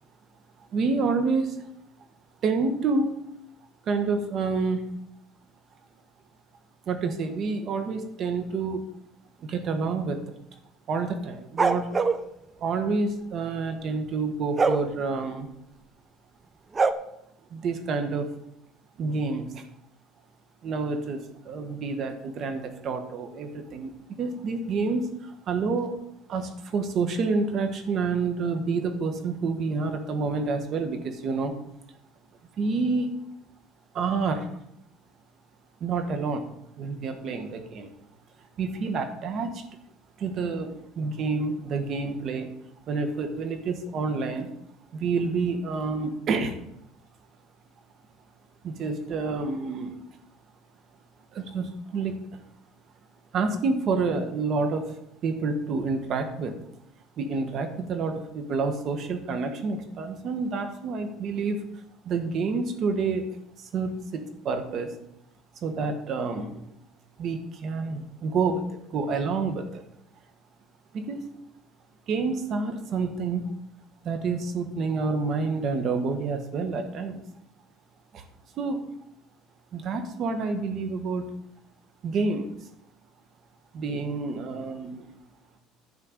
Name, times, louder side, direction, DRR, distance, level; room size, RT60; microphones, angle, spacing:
voice 1, 0.7-1.7 2.4-3.1 3.9-4.9 6.8-8.8 9.4-10.4 10.9-11.9 12.6-15.5 17.5-18.3 19.0-19.6 20.6-23.9 24.2-26.0 26.3-31.5 32.6-33.1 33.9-34.5 35.8-36.4 36.8-37.9 38.6-39.6 40.2-42.5 42.9-44.5 44.9-46.5 48.6-50.0 51.3-52.3 53.3-54.9 55.2-56.6 57.2-61.6 62.0-63.3 63.6-64.9 65.6-66.6 67.2-69.8 70.9-71.3 72.1-73.5 74.0-77.2 78.1-78.2 78.6-78.8 79.7-81.3 82.0-82.5 83.7-85.1, right 4 dB, 50° right, 7 dB, 1.6 m, -28 dB
sound 1, 11.6-12.2 14.6-14.8 16.7-16.9, right 4 dB, 25° right, 0.6 m, -22 dB
10.5 x 4.5 x 7.6 m, 0.78 s
cardioid pair, 120°, 0 cm